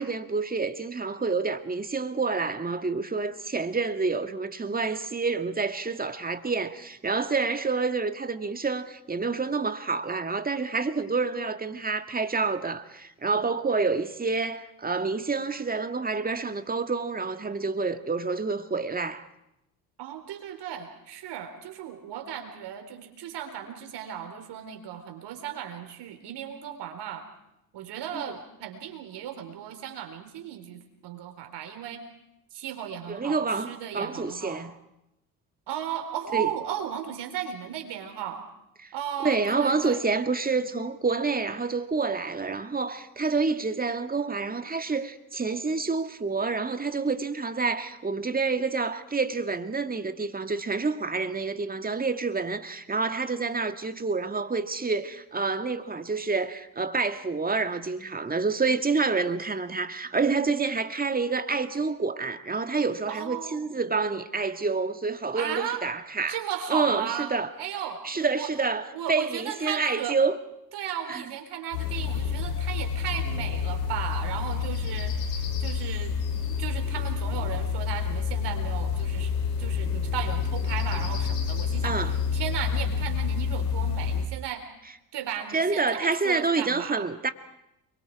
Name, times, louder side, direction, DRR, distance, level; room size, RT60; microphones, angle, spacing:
voice 1, 0.0-19.3 28.1-28.2 33.1-34.7 36.3-36.5 38.8-38.9 39.2-66.4 66.7-67.5 68.0-70.4 71.1-71.3 81.8-82.1 85.5-87.3, right 4 dB, 20° right, 1.9 m, -28 dB
voice 2, 20.0-27.3 27.7-32.0 32.5-34.7 35.7-38.5 38.9-40.0 40.6-40.7 63.1-63.7 65.3-65.8 66.3-67.3 67.6-68.5 68.9-70.2 70.7-76.2 76.6-79.3 79.6-84.7 85.1-87.1, right 9 dB, 55° right, 4.1 m, -36 dB
sound 1, 71.7-84.2, left 6 dB, 80° left, 3.3 m, -28 dB
29.5 x 22.5 x 4.8 m
figure-of-eight pair, 55°, 48 cm